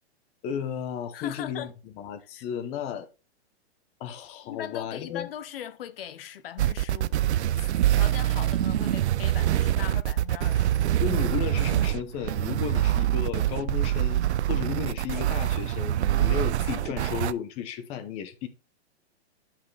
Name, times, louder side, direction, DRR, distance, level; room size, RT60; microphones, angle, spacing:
voice 1, 0.4-3.1 4.0-5.3 11.0-18.5, left 8 dB, 20° left, 0.7 m, -34 dB
voice 2, 1.1-1.7 2.3-2.4 4.4-7.4 7.9-10.9, left 10 dB, 60° left, 0.9 m, -40 dB
sound 1, 6.6-17.3, right 13 dB, 90° right, 0.5 m, -25 dB
9.2 x 5.8 x 3.2 m
hypercardioid pair, 155°, 33 cm